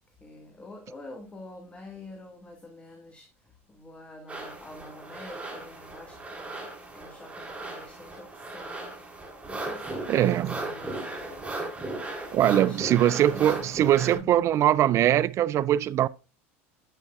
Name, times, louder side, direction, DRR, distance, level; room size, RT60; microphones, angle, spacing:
voice 1, 0.2-6.7 6.9-9.0 9.5-11.6 12.5-13.5 14.1-14.5, left 2 dB, 15° left, 1.8 m, -46 dB
sound 1, 4.3-14.2, right 2 dB, 15° right, 3.4 m, -37 dB
voice 2, 10.1-10.6 12.3-16.1, right 12 dB, 45° right, 0.4 m, -22 dB
10.0 x 8.3 x 2.4 m
hypercardioid pair, 90°, 7 cm